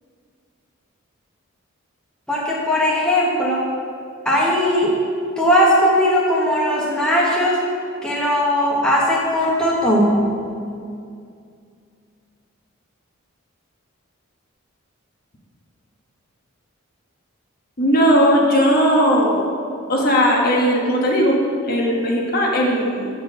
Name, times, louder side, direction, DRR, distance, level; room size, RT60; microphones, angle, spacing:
voice 1, 2.3-3.7 4.2-4.9 5.4-7.6 8.0-10.3, equal, 5° left, -5 dB, 1.0 m, -18 dB
voice 2, 17.8-19.4 19.9-21.4 21.7-23.1, equal, 45° left, -2 dB, 1.2 m, -17 dB
7.3 x 4.7 x 6.6 m, 2.3 s
head